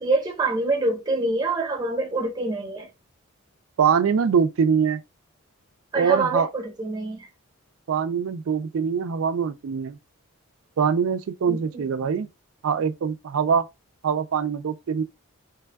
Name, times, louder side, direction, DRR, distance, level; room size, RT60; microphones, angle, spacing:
voice 1, 0.0-2.9 5.9-7.3 11.5-11.9, right 2 dB, 20° right, 0.7 m, -26 dB
voice 2, 3.8-5.0 5.9-6.5 7.9-10.0 10.8-12.3 12.6-13.7 14.0-15.0, right 6 dB, 65° right, 0.4 m, -23 dB
3.3 x 2.2 x 3.4 m
head